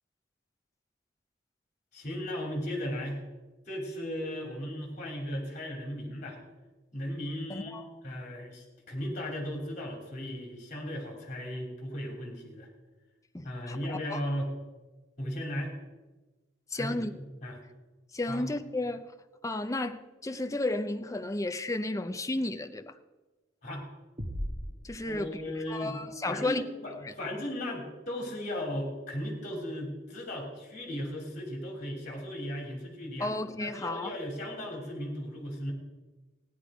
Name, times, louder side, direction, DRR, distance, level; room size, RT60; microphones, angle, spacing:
voice 1, 1.9-3.2 3.7-6.4 6.9-7.7 8.0-12.7 13.4-14.5 15.2-15.7 16.7-17.6 18.3-18.5 23.6-23.9 25.0-26.0 26.3-33.3 33.6-35.7, equal, 40° left, 0 dB, 3.2 m, -36 dB
voice 2, 7.5-7.9 13.3-13.8 14.1-14.2 16.7-17.1 18.1-19.1 19.4-23.0 24.8-25.4 25.7-26.6 27.0-27.1 33.2-34.2, left 2 dB, 15° left, 8 dB, 0.6 m, -33 dB
sound 1, 24.2-25.9, equal, 35° right, 1.4 m, -38 dB
16.0 x 10.5 x 5.0 m, 1.2 s
head